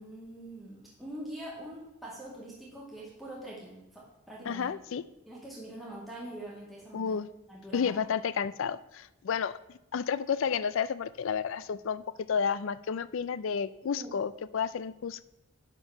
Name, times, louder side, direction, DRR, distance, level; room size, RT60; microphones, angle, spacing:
voice 1, 0.0-4.0 4.3-4.7 5.3-7.2 7.5-8.0 13.8-14.1, right 1 dB, ahead, -7 dB, 2.1 m, -44 dB
voice 2, 4.5-5.0 6.9-7.3 7.7-9.6 9.9-15.2, left 6 dB, 60° left, 17 dB, 0.4 m, -31 dB
10.5 x 4.6 x 5.8 m, 0.89 s
head